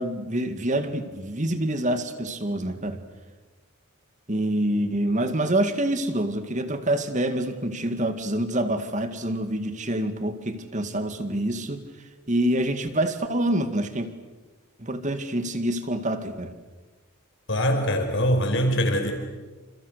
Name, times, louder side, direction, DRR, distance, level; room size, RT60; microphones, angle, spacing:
voice 1, 0.0-3.0 4.3-11.9 12.3-14.1 14.8-16.5, right 1 dB, 35° right, 9 dB, 2.1 m, -26 dB
voice 2, 17.5-19.1, equal, 55° left, 5 dB, 5.3 m, -23 dB
29.0 x 28.0 x 6.8 m, 1.2 s
head